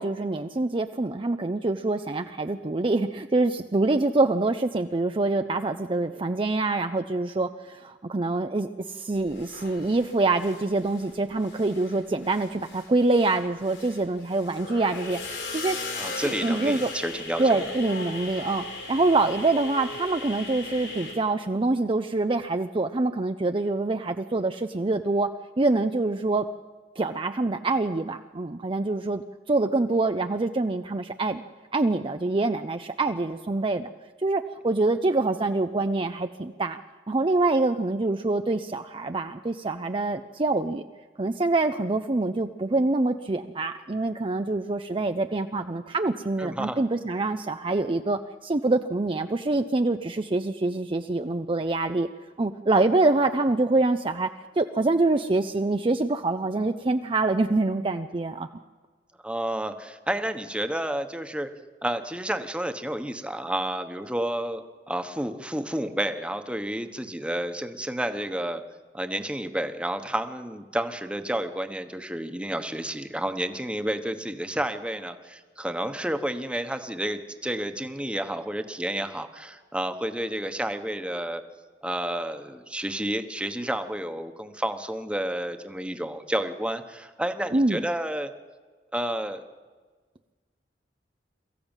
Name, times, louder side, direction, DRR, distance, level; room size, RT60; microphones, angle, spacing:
voice 1, 0.0-15.8 16.2-16.9 17.4-25.3 25.6-26.5 27.0-29.2 29.5-31.4 31.7-33.9 34.2-36.8 37.1-40.8 41.2-52.1 52.4-54.3 54.6-58.5 87.5-87.8, right 2 dB, 30° right, 7 dB, 0.5 m, -25 dB
sound 1, 9.3-11.1 11.4-21.1, left 3 dB, 75° left, 5.7 m, -38 dB
voice 2, 15.9-17.7 46.4-46.8 59.2-61.5 61.8-68.6 68.9-81.4 81.8-88.3 88.9-89.4, right 1 dB, 5° right, 8 dB, 1.1 m, -30 dB
22.5 x 14.5 x 9.0 m, 1.4 s
head